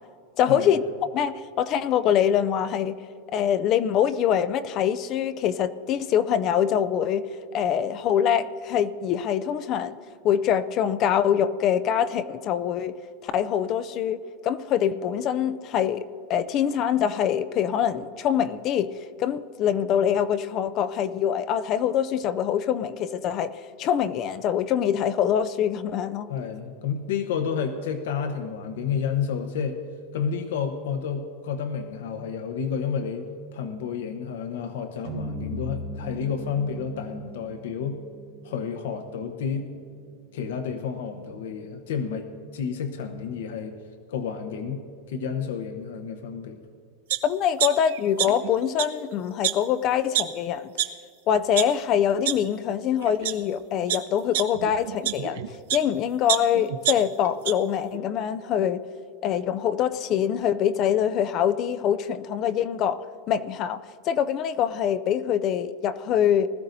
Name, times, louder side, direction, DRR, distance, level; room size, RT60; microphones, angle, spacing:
voice 1, 0.4-0.8 1.1-3.0 3.3-7.2 7.5-10.0 10.2-12.9 13.2-16.0 16.3-18.9 19.2-23.5 23.8-26.3 47.2-50.7 51.3-55.4 55.7-58.8 59.2-63.0 63.3-63.8 64.1-66.5, left 9 dB, 30° left, 14 dB, 0.3 m, -24 dB
voice 2, 26.3-29.8 30.1-38.0 38.4-39.7 40.3-43.8 44.1-44.8 45.1-46.6, left 6 dB, 75° left, 7 dB, 0.9 m, -30 dB
sound 1, 35.0-39.4, equal, 45° right, 2.2 m, -38 dB
sound 2, 47.1-47.2 47.6-48.5 48.8-48.9 49.4-49.5 50.1-50.2 50.8-50.9 51.4-51.6 52.3-52.4 53.0-53.3 53.9-55.9 56.3-57.5 57.9-58.0, right 12 dB, 75° right, 0.7 m, -26 dB
20.0 x 14.0 x 2.7 m, 2.3 s
supercardioid pair, 175°, 0 cm